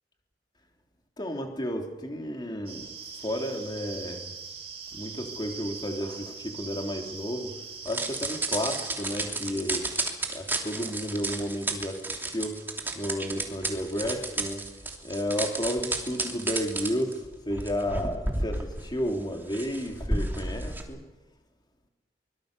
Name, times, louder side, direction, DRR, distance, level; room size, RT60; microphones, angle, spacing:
voice 1, 1.2-2.9 3.2-4.3 4.9-7.5 7.8-9.9 10.3-12.6 12.9-14.6 15.0-21.0, equal, 25° left, 2 dB, 3.4 m, -32 dB
sound 1, 2.7-9.0, right 5 dB, 35° right, 7.3 m, -41 dB
sound 2, 7.9-20.8, right 2 dB, 10° right, 2.9 m, -32 dB
24.0 x 22.5 x 6.9 m, 1.1 s
head